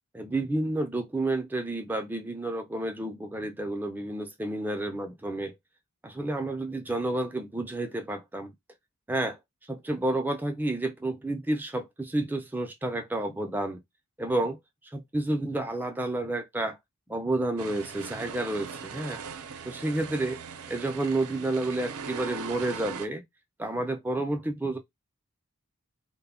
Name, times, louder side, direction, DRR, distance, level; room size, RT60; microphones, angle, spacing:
voice 1, 0.1-5.5 6.0-8.5 9.1-13.8 14.2-14.6 14.9-16.8 17.1-19.2 19.6-20.4 20.7-23.2 23.6-24.8, right 2 dB, 10° right, 0.3 m, -30 dB
sound 1, 17.6-23.1, right 6 dB, 85° right, 0.5 m, -40 dB
2.1 x 2.1 x 3.5 m
head